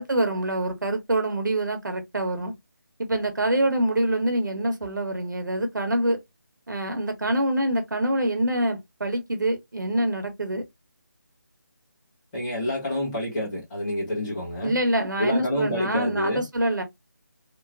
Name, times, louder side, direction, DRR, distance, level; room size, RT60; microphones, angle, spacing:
voice 1, 0.0-2.5 3.0-6.2 6.7-10.6 14.6-16.8, right 1 dB, 75° right, 0.8 m, -25 dB
voice 2, 12.3-14.8 15.2-16.5, left 1 dB, 15° left, 1.2 m, -28 dB
2.9 x 2.1 x 2.4 m
figure-of-eight pair, 160°, 10 cm